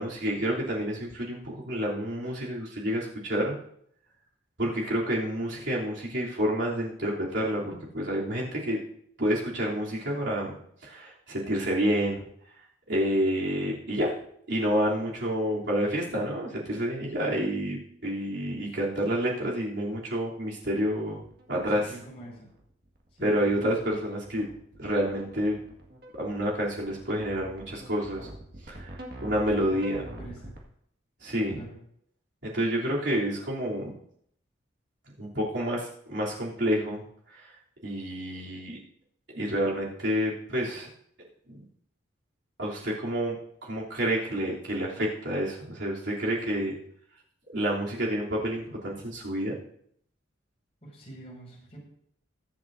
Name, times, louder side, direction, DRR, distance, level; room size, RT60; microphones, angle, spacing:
voice 1, 0.0-3.5 4.6-8.8 9.2-12.2 12.9-14.1 14.5-21.2 21.5-21.9 23.2-24.5 24.8-25.5 26.2-28.3 28.7-28.9 29.2-30.0 31.2-31.5 32.4-33.9 35.2-37.0 37.8-38.8 39.3-40.9 41.5-41.6 42.6-43.3 43.6-46.8 47.5-49.5, equal, 65° right, -5 dB, 3.2 m, -29 dB
sound 1, 21.3-30.6, right 1 dB, 50° right, 2.0 m, -45 dB
voice 2, 21.5-22.5 23.2-23.6 30.2-30.5 31.5-31.8 50.8-51.8, right 1 dB, 30° left, -6 dB, 5.7 m, -44 dB
21.5 x 7.6 x 2.7 m, 0.68 s
head